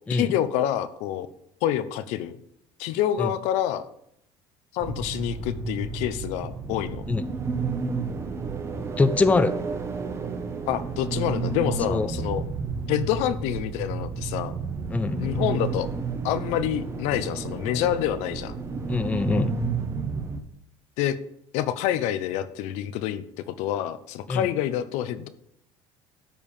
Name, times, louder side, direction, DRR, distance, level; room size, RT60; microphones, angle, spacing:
voice 1, 0.1-1.3 1.6-2.4 2.8-3.9 4.7-7.0 10.7-12.4 12.9-14.6 15.2-15.9 16.2-18.5 21.0-21.2 21.5-25.3, left 11 dB, 75° left, 12 dB, 0.9 m, -27 dB
sound 1, 4.8-20.4, right 4 dB, 25° right, 1.2 m, -31 dB
voice 2, 9.0-9.5 11.9-12.1 14.9-15.2 18.9-19.5 24.3-24.5, left 3 dB, 10° left, 11 dB, 0.5 m, -23 dB
12.5 x 4.8 x 7.3 m, 0.75 s
cardioid pair, 145°, 12 cm